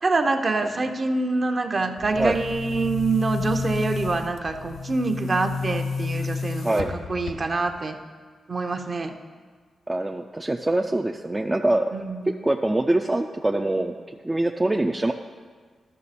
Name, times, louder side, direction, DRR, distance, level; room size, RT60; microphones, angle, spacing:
voice 1, 0.0-8.0 8.5-9.2 11.9-12.4, right 3 dB, 40° right, 5 dB, 0.8 m, -26 dB
Boom, 2.0-7.8, left 5 dB, 85° left, 0.5 m, -31 dB
voice 2, 9.9-11.9 12.3-15.1, right 1 dB, 20° right, 4 dB, 0.4 m, -24 dB
12.0 x 6.0 x 4.2 m, 1.5 s
cardioid pair, 75°, 0 cm